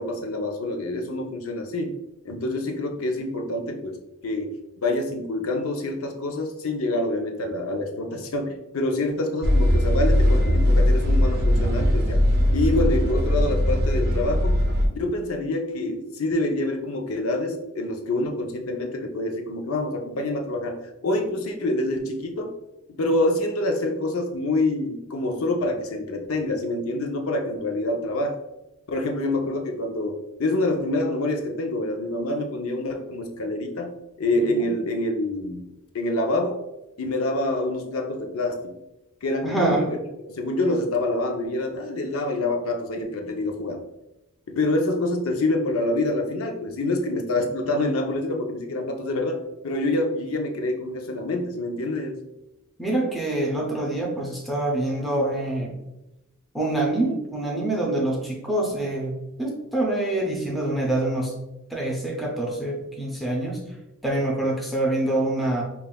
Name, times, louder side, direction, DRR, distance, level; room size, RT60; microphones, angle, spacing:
voice 1, 0.0-1.9 2.2-4.6 4.8-12.2 12.5-14.6 14.9-22.5 23.0-28.4 28.9-33.9 34.2-35.6 35.9-36.6 37.0-38.7 39.2-40.0 40.3-43.8 44.5-49.4 49.6-52.2, left 2 dB, 75° left, 3 dB, 0.6 m, -26 dB
sound 1, 9.4-14.9, equal, 50° right, 0.5 m, -20 dB
voice 2, 34.3-34.7 39.4-39.8 52.8-55.8 56.5-61.3 61.7-63.6 64.0-65.6, right 1 dB, ahead, -3 dB, 0.5 m, -25 dB
5.2 x 2.3 x 2.2 m, 0.95 s
head